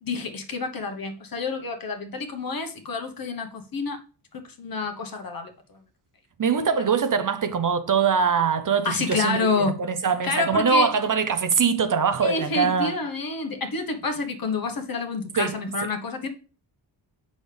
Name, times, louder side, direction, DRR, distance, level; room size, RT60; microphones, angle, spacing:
voice 1, 0.0-4.0 4.3-5.5 8.8-9.7 10.2-10.9 12.2-16.3, left 4 dB, 45° left, 1.2 m, -28 dB
voice 2, 6.4-12.9 15.4-15.6, right 6 dB, 45° right, 0.7 m, -23 dB
8.5 x 6.3 x 3.4 m
wide cardioid pair, 150°, 46 cm